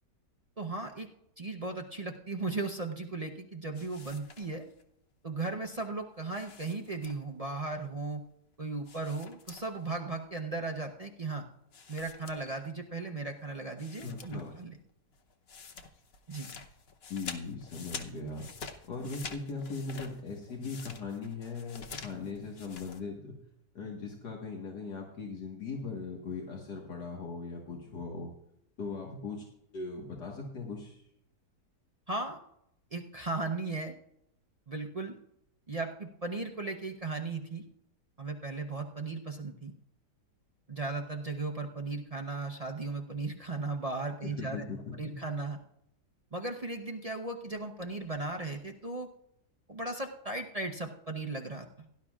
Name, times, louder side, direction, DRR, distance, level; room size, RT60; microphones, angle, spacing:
voice 1, 0.6-1.1 1.4-4.7 5.2-8.2 8.6-11.4 11.9-14.8 16.3-16.5 32.1-32.4 32.9-33.9 34.7-35.1 35.7-37.6 38.2-39.7 40.7-44.6 45.0-45.6 46.3-49.1 49.7-51.9, right 3 dB, 40° right, 3 dB, 0.5 m, -36 dB
sound 1, 3.8-4.8 6.3-7.4 8.9-9.9 10.2-10.3 11.7-12.9 13.4-13.5 13.8-14.6 14.9-23.0, left 5 dB, 45° left, 0.9 m, -47 dB
voice 2, 14.0-14.6 17.1-18.5 18.8-23.4 23.8-28.3 28.8-29.5 29.7-31.0 44.2-45.2, left 4 dB, 75° left, -1 dB, 2.1 m, -39 dB
17.5 x 11.5 x 2.4 m, 0.75 s
omnidirectional pair, 1.8 m